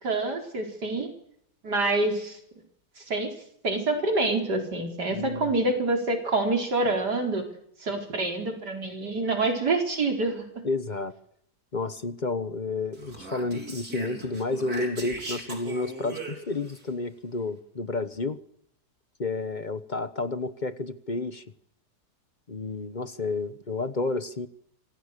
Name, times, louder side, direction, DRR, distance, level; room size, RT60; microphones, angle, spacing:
voice 1, 0.0-1.1 1.6-2.4 3.0-3.3 3.6-7.4 7.8-10.4, right 2 dB, 85° right, 3 dB, 5.0 m, -26 dB
voice 2, 5.1-5.5 10.6-11.1 11.7-18.4 19.2-21.4 22.5-24.5, left 3 dB, 30° left, 13 dB, 1.1 m, -31 dB
Speech, 12.9-16.8, right 2 dB, 65° right, 5.0 m, -39 dB
27.5 x 26.0 x 6.8 m, 0.70 s
omnidirectional pair, 1.7 m